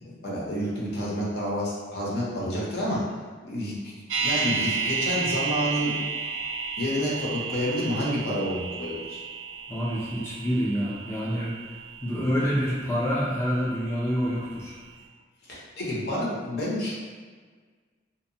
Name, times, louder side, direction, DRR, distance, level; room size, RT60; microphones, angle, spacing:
voice 1, 0.0-3.0 3.4-5.9 6.8-9.2 12.1-12.3 15.5-16.9, equal, 60° left, -5 dB, 0.7 m, -29 dB
sound 1, 4.1-14.1 14.4-14.5, right 5 dB, 70° right, 0.4 m, -32 dB
voice 2, 9.7-11.5 12.0-14.7, equal, 15° left, -7 dB, 0.4 m, -27 dB
2.8 x 2.1 x 2.7 m, 1.5 s
head